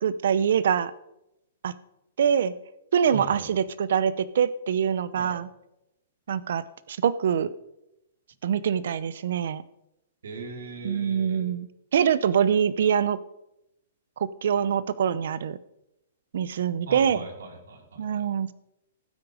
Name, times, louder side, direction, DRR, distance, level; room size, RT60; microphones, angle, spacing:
voice 1, 0.0-0.9 1.6-1.7 2.2-2.5 2.9-5.5 6.3-6.6 6.9-7.5 8.4-9.6 10.8-13.2 14.2-15.6 16.3-17.2 18.0-18.5, right 8 dB, 65° right, 17 dB, 0.8 m, -24 dB
voice 2, 3.1-3.5 5.2-5.4 10.2-11.5 16.9-18.3, right 3 dB, 90° right, 3 dB, 3.9 m, -39 dB
15.0 x 12.0 x 5.0 m, 0.85 s
hypercardioid pair, 170°, 0 cm